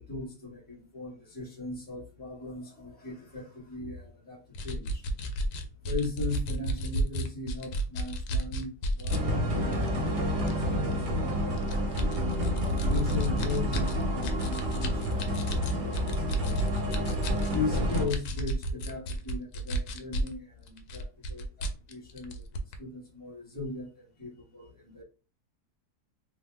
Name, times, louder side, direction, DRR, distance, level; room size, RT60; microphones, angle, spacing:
voice 1, 0.0-5.0 5.8-11.7 12.9-16.5 17.5-22.4 22.8-25.0, left 3 dB, 5° left, -4 dB, 0.8 m, -38 dB
sound 1, 4.6-9.2 9.7-9.9 10.5-10.9 11.6-20.4 20.7-22.8, right 1 dB, 85° left, 1.2 m, -32 dB
sound 2, 9.1-18.1, equal, 50° right, 0.6 m, -29 dB
3.0 x 2.1 x 3.2 m, 0.34 s
omnidirectional pair, 1.8 m